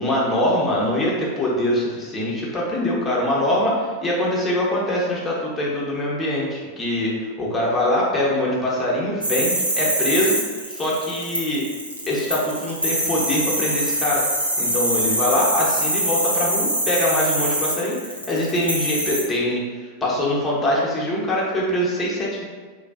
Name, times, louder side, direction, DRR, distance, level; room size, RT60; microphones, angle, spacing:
voice 1, 0.0-10.4 10.7-11.6 12.1-14.2 14.6-22.4, left 1 dB, 15° left, -5 dB, 0.6 m, -23 dB
sound 1, 9.2-19.2, right 1 dB, 85° right, 0.6 m, -24 dB
2.5 x 2.2 x 2.3 m, 1.5 s
figure-of-eight pair, 90°, 0 cm